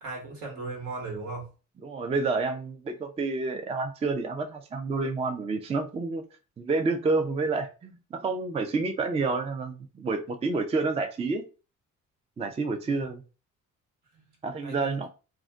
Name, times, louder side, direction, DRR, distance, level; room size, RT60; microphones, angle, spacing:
voice 1, 0.0-1.5 12.8-13.0 14.6-15.1, right 3 dB, 70° right, 0 dB, 1.2 m, -37 dB
voice 2, 1.8-6.2 6.6-11.4 12.4-13.2 14.4-15.1, right 3 dB, 20° right, 6 dB, 0.4 m, -29 dB
2.4 x 2.1 x 3.4 m, 0.33 s
cardioid pair, 90°, 30 cm